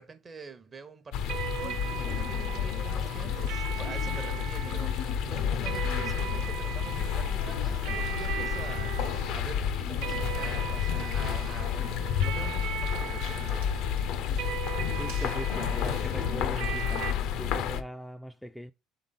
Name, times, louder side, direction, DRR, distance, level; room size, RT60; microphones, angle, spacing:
voice 1, 0.0-13.7, right 5 dB, 35° right, 0.8 m, -46 dB
sound 1, 1.1-17.8, left 8 dB, 65° left, 0.4 m, -30 dB
sound 2, 1.3-17.1, right 10 dB, 70° right, 0.4 m, -39 dB
Fire, 5.9-15.5, right 4 dB, 90° right, 0.8 m, -56 dB
voice 2, 14.9-18.7, equal, ahead, 0.3 m, -40 dB
3.8 x 3.4 x 3.8 m
hypercardioid pair, 65°, 0 cm